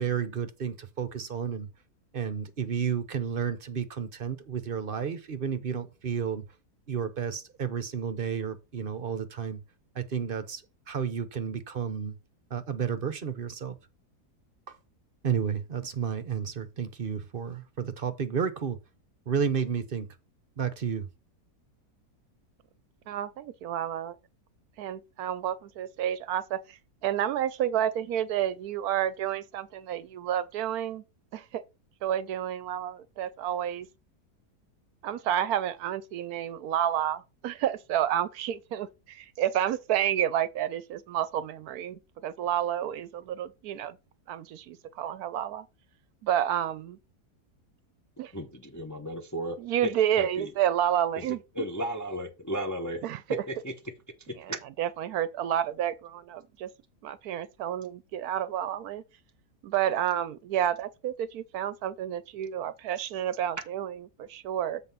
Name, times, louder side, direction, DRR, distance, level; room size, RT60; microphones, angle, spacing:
voice 1, 0.0-1.7 2.1-6.4 6.9-9.6 9.9-10.6 10.9-12.1 12.5-13.8 14.7-14.8 15.2-18.8 19.3-20.1 20.6-21.1, right 7 dB, 45° right, 0.8 m, -31 dB
voice 2, 23.1-24.2 24.8-26.8 27.0-31.0 31.3-31.6 32.0-33.9 35.0-44.0 44.3-45.7 46.2-47.0 48.2-48.3 49.6-51.7 53.0-53.6 54.3-56.7 57.0-59.0 59.6-64.8, right 10 dB, 75° right, 1.0 m, -30 dB
voice 3, 48.3-49.6 49.8-49.9 50.2-50.5 51.2-51.3 51.5-53.0 53.5-53.7 54.5-54.6, equal, 20° left, 0.5 m, -34 dB
7.7 x 4.1 x 5.5 m
omnidirectional pair, 1.7 m